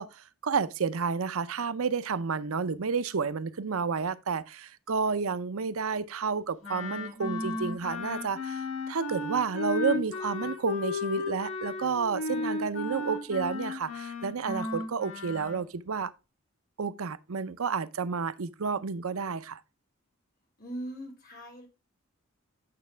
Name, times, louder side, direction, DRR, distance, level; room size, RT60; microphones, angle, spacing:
voice 1, 0.0-16.1 16.8-19.6, right 5 dB, 75° right, 0.6 m, -31 dB
Wind instrument woodwind instrument, 6.6-15.6, left 3 dB, 75° left, 2.5 m, -34 dB
voice 2, 20.6-21.7, right 1 dB, 40° left, 3.4 m, -40 dB
8.7 x 7.0 x 3.3 m
head